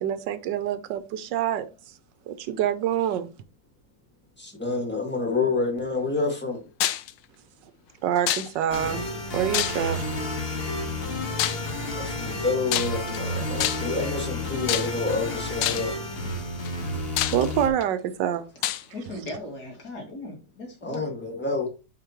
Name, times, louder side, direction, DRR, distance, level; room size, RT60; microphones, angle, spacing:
voice 1, 0.0-1.9 2.3-3.3 8.0-9.1 9.3-10.0 17.3-18.4, right 10 dB, 80° right, 1.3 m, -26 dB
voice 2, 4.4-6.6 11.9-15.9 20.8-21.7, left 3 dB, 5° left, 1.6 m, -28 dB
sound 1, 6.8-7.1 8.3-8.8 9.5-10.1 11.4-11.7 12.7-13.2 13.6-14.0 14.7-15.1 15.6-16.0 16.6-16.7 17.2-17.8 18.6-18.8, left 13 dB, 80° left, 1.2 m, -27 dB
sound 2, 8.7-17.7, left 1 dB, 35° left, 1.6 m, -31 dB
voice 3, 18.9-21.1, left 1 dB, 60° left, 2.8 m, -38 dB
8.7 x 4.9 x 3.0 m
omnidirectional pair, 2.0 m